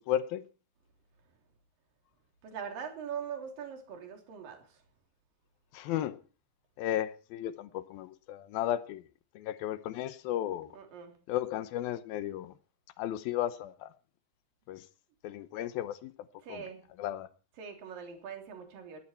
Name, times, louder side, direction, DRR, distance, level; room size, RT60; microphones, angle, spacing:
voice 1, 0.1-0.4 5.7-6.2 6.8-9.0 9.4-10.7 11.3-12.5 13.0-13.9 14.7-14.8 15.2-16.1 16.5-16.6 17.0-17.3, left 12 dB, 75° left, 2.3 m, -34 dB
voice 2, 2.4-4.8 10.7-11.1 16.4-16.8 17.6-19.0, right 7 dB, 55° right, 4.8 m, -42 dB
19.5 x 14.0 x 4.4 m
omnidirectional pair, 5.0 m